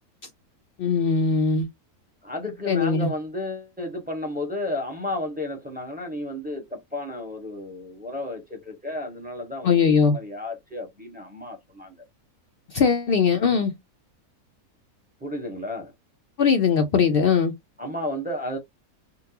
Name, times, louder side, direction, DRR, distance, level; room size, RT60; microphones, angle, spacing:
voice 1, 0.8-1.7 2.7-3.1 9.6-10.2 12.7-13.7 16.4-17.5, left 5 dB, 85° left, 0.5 m, -20 dB
voice 2, 2.2-11.9 15.2-15.9 17.8-18.6, left 1 dB, 5° right, 0.8 m, -32 dB
3.7 x 2.2 x 2.8 m
omnidirectional pair, 1.6 m